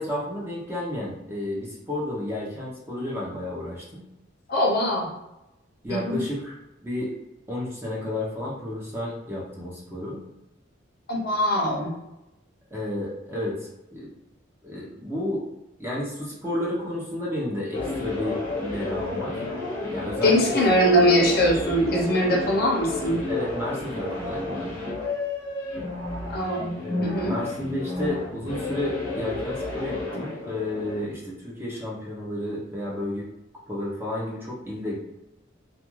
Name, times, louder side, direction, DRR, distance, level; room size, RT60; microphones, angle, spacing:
voice 1, 0.0-4.0 5.8-6.6 6.8-7.1 7.5-10.2 12.7-14.1 14.6-15.4 15.8-19.4 19.9-20.6 23.3-24.7 26.8-33.3 33.7-35.0, left 1 dB, 10° right, -5 dB, 0.6 m, -31 dB
voice 2, 4.5-5.1 5.9-6.2 11.1-11.9 20.2-23.2 26.3-26.7 27.0-27.4, equal, 50° left, -1 dB, 0.6 m, -22 dB
sound 1, 17.7-31.0, left 2 dB, 80° left, 0.7 m, -31 dB
2.3 x 2.3 x 3.0 m, 0.91 s
head